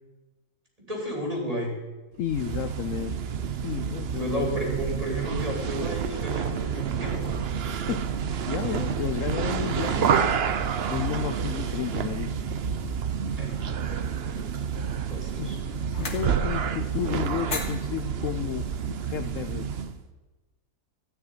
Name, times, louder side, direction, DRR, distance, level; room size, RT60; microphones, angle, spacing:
voice 1, 0.9-1.8 4.2-7.5 13.4-13.6 15.1-15.6, equal, 25° right, -1 dB, 3.8 m, -32 dB
voice 2, 2.2-3.2 3.6-4.5 7.9-8.1 8.5-10.4 10.9-12.3 15.4-15.5 16.0-19.7, left 11 dB, 70° left, 10 dB, 0.8 m, -32 dB
sound 1, 2.2-20.0, right 7 dB, 50° right, 0.8 m, -29 dB
sound 2, 14.1-19.5, left 3 dB, 50° left, 1.9 m, -41 dB
14.5 x 6.5 x 9.4 m, 1.2 s
omnidirectional pair, 1.6 m